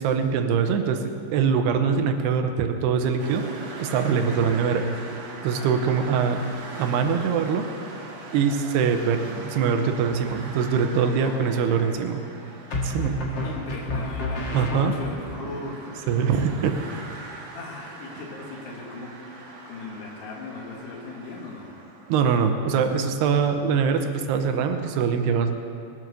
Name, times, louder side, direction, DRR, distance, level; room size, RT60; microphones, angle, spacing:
voice 1, 0.0-3.5 3.8-5.1 5.4-6.5 6.8-7.7 8.3-12.2 12.8-13.2 14.5-14.9 16.1-16.8 22.1-25.5, right 6 dB, 90° right, 7 dB, 3.0 m, -23 dB
sound 1, 3.2-22.8, right 3 dB, 50° right, 2.2 m, -41 dB
voice 2, 5.5-6.0 11.1-11.9 13.3-15.9 17.5-19.2 19.7-21.7, left 3 dB, 85° left, 0 dB, 4.0 m, -39 dB
sound 2, 10.0-10.6 12.7-15.4, left 1 dB, 50° left, 1.4 m, -30 dB
21.0 x 7.7 x 6.7 m, 2.5 s
omnidirectional pair, 4.6 m